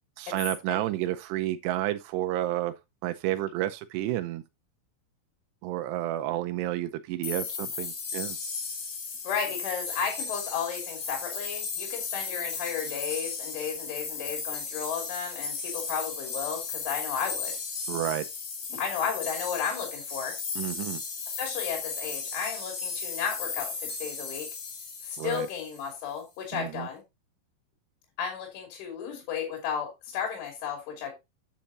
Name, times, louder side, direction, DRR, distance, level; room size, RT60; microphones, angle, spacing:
voice 1, 0.2-2.7 3.0-4.4 5.6-8.4 17.9-18.3 20.6-21.0 25.2-25.5 26.5-26.9, right 14 dB, 85° right, 2.4 m, -30 dB
sound 1, 7.2-25.9, left 5 dB, 45° left, 3.1 m, -35 dB
voice 2, 9.2-17.5 18.7-20.4 21.4-24.5 25.0-27.0 28.2-31.1, left 7 dB, 75° left, 5.3 m, -33 dB
9.0 x 8.5 x 2.7 m
omnidirectional pair, 5.6 m